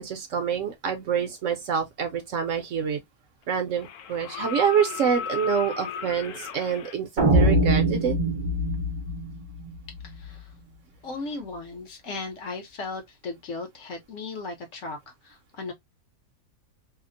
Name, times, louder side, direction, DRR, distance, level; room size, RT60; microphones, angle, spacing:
voice 1, 0.0-3.0 3.5-8.2, right 7 dB, 65° right, 0.9 m, -27 dB
sound 1, 2.6-2.7 3.7-7.0 8.7-8.8, left 6 dB, 85° left, 1.1 m, -35 dB
sound 2, 7.2-10.3, right 1 dB, 40° right, 0.5 m, -23 dB
voice 2, 10.0-10.5 11.0-15.7, left 3 dB, 60° left, 1.1 m, -36 dB
2.8 x 2.1 x 2.4 m
omnidirectional pair, 1.6 m